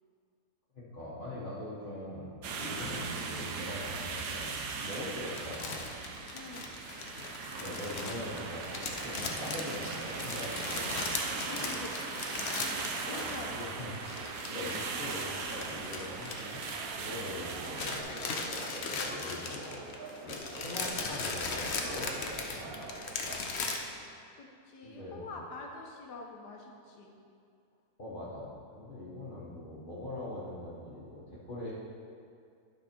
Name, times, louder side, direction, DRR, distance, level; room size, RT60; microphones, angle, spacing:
voice 1, 0.7-5.9 7.6-11.0 11.5-11.7 13.5-13.9 14.5-16.6 16.9-18.3 18.8-19.9 20.2-23.5 23.7-23.9 24.8-25.3 28.0-31.7, left 1 dB, 35° left, -10 dB, 1.4 m, -42 dB
sound 1, 2.4-18.0, right 4 dB, 85° right, 1.3 m, -39 dB
sound 2, 4.9-13.6 13.9-17.2 17.5-23.8, left 4 dB, 50° left, 0.9 m, -38 dB
voice 2, 6.3-6.7 11.4-11.9 12.2-13.6 24.4-27.1, left 3 dB, 80° left, 1 dB, 1.7 m, -45 dB
sound 3, 7.5-23.1, right 4 dB, 65° right, 1.2 m, -47 dB
11.5 x 5.5 x 4.4 m, 2.3 s
omnidirectional pair, 1.7 m